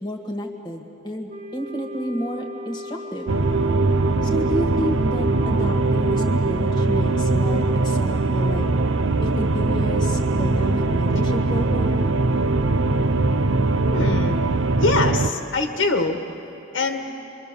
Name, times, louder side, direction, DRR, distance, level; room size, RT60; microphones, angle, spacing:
voice 1, 0.0-3.3 4.2-8.7 9.2-12.0, equal, 20° left, 2 dB, 1.7 m, -31 dB
Wind instrument woodwind instrument, 1.3-5.8, left 1 dB, 35° right, 1.1 m, -36 dB
sound 1, 3.3-15.3, right 2 dB, 65° right, 0.7 m, -21 dB
voice 2, 13.9-14.4 14.8-16.2 16.7-17.1, left 3 dB, 60° left, 4 dB, 1.4 m, -23 dB
26.0 x 23.0 x 6.8 m, 2.9 s
head